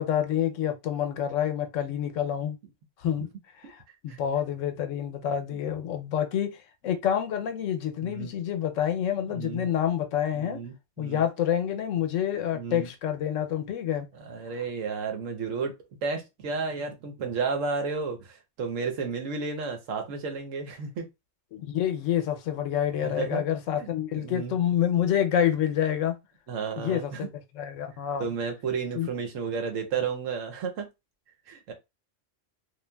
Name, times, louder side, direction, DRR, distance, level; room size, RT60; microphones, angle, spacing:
voice 1, 0.0-2.6 3.0-3.3 3.7-10.6 11.0-14.1 21.5-26.2 26.8-27.3 27.6-28.3 29.0-29.1, left 10 dB, 85° left, 1.0 m, -28 dB
voice 2, 8.0-8.3 9.3-9.7 10.3-11.2 12.5-12.9 14.1-21.0 23.0-23.4 23.8-24.6 26.5-27.3 28.2-30.9 31.5-31.7, right 5 dB, 85° right, 1.1 m, -32 dB
3.0 x 2.4 x 2.2 m
omnidirectional pair, 1.3 m